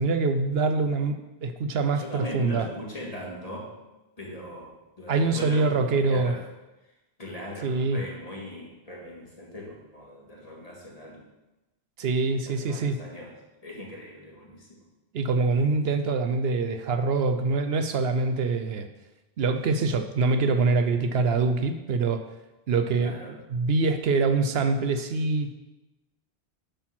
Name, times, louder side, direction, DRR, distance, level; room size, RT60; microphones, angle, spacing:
voice 1, 0.0-2.7 5.1-6.3 7.6-8.0 12.0-13.0 15.1-18.9 19.4-22.2 22.7-23.1 23.5-25.5, right 4 dB, 70° right, 8 dB, 0.9 m, -24 dB
voice 2, 1.9-3.7 4.2-6.4 7.2-11.3 12.4-13.3 13.6-14.8 23.0-23.3, equal, 35° left, -3 dB, 2.1 m, -40 dB
10.0 x 4.3 x 5.9 m, 1.0 s
omnidirectional pair, 1.1 m